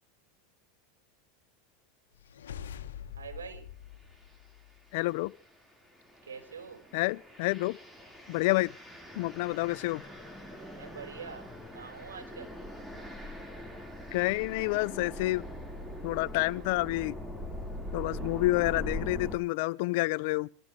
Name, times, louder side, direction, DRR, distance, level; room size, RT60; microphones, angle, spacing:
sound 1, 2.1-4.9, left 9 dB, 80° left, 1.7 m, -45 dB
voice 1, 3.2-3.7 6.3-6.8 10.7-12.5, right 6 dB, 90° right, 5.3 m, -45 dB
sound 2, 4.1-4.4 4.9-19.4, equal, 10° right, 4.8 m, -42 dB
voice 2, 4.9-5.3 6.9-7.8 8.3-8.7 9.2-10.0 14.1-15.4 16.0-17.2 17.9-20.5, left 21 dB, 65° left, 0.8 m, -29 dB
27.0 x 14.5 x 3.4 m
hypercardioid pair, 100°, 0 cm